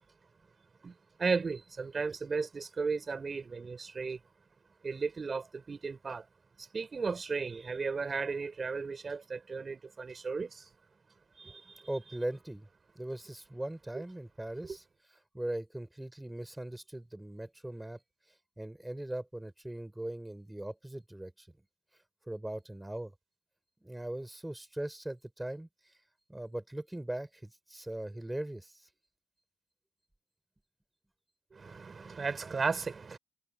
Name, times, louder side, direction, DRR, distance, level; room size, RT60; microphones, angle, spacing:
voice 1, 1.2-4.2 4.8-6.2 6.7-10.6 11.4-11.6 14.6-14.8 31.5-33.2, right 4 dB, 35° right, 4.8 m, -35 dB
voice 2, 11.9-12.7 12.9-14.8 15.3-18.0 18.6-21.5 22.3-23.1 23.8-25.7 26.3-28.9, right 1 dB, 10° right, 4.7 m, -40 dB
cardioid pair, 90°, 0 cm